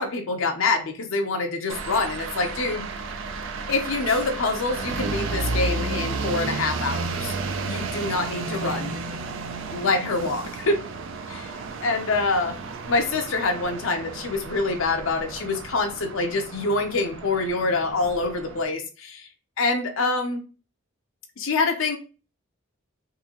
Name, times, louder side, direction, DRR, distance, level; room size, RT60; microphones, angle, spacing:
voice 1, 0.0-2.9 3.7-7.3 7.6-9.0 9.7-10.8 11.3-11.5 11.8-12.5 12.9-19.3 19.6-20.4 21.4-22.0, left 3 dB, 75° left, 4 dB, 0.7 m, -25 dB
sound 1, 1.7-18.6, right 3 dB, 70° right, 0.4 m, -32 dB
3.8 x 2.7 x 2.9 m, 0.33 s
head